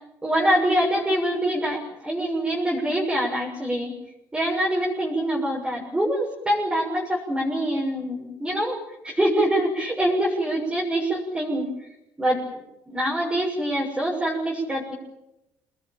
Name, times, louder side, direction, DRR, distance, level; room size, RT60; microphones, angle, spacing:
voice 1, 0.2-3.9 4.3-8.8 9.0-11.7 12.2-12.4 12.9-14.9, right 1 dB, 15° right, -3 dB, 6.7 m, -24 dB
26.0 x 20.5 x 9.1 m, 0.91 s
cardioid pair, 120°, 7 cm